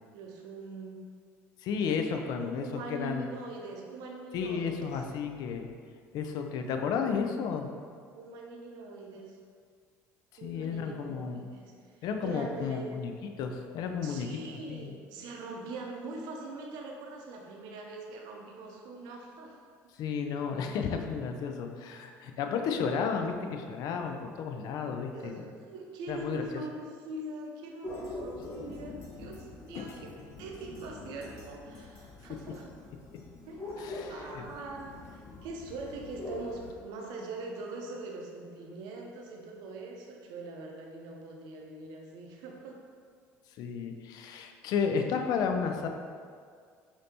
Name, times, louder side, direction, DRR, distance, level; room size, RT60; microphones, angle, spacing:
voice 1, 0.1-1.0 2.1-5.0 8.1-9.4 10.4-12.9 14.0-19.6 25.1-25.3 25.6-32.7 33.4-42.8, right 2 dB, 70° right, 0 dB, 0.6 m, -42 dB
voice 2, 1.6-3.3 4.3-5.7 6.1-7.7 10.4-11.5 12.0-13.1 13.4-14.9 20.0-25.4 26.1-26.4 29.7-29.9 33.8-34.4 43.6-45.9, left 6 dB, 65° left, 4 dB, 0.4 m, -33 dB
sound 1, 27.8-36.7, left 2 dB, 45° left, 1.3 m, -44 dB
5.1 x 2.7 x 2.8 m, 2.1 s
supercardioid pair, 80°, 7 cm